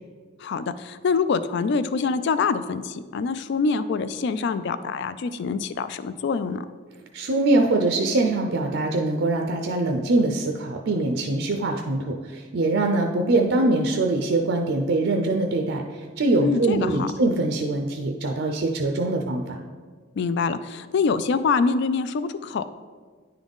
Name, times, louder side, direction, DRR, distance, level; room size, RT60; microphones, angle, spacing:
voice 1, 0.4-6.6 16.4-17.1 20.2-22.7, left 5 dB, 60° left, 12 dB, 0.3 m, -25 dB
voice 2, 7.1-19.6, right 2 dB, 60° right, 3 dB, 0.5 m, -23 dB
9.9 x 3.9 x 3.5 m, 1.5 s
head